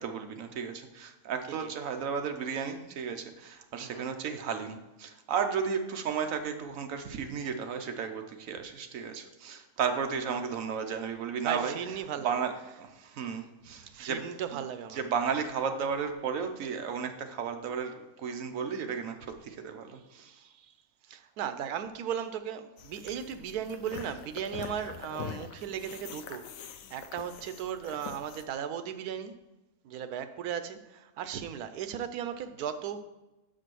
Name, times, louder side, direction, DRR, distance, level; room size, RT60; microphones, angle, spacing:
voice 1, 0.0-11.8 12.2-12.5 12.8-14.2 14.9-17.9 18.2-19.2 19.4-20.3, right 6 dB, 70° right, 6 dB, 1.1 m, -33 dB
voice 2, 3.8-4.1 11.4-12.3 13.0-13.1 13.7-15.0 20.4-20.7 21.1-26.4 26.9-29.3 29.8-33.1, right 8 dB, 90° right, 11 dB, 1.1 m, -36 dB
sound 1, 22.8-28.5, left 8 dB, 70° left, 1.0 m, -44 dB
6.4 x 5.0 x 6.1 m, 1.0 s
omnidirectional pair, 1.5 m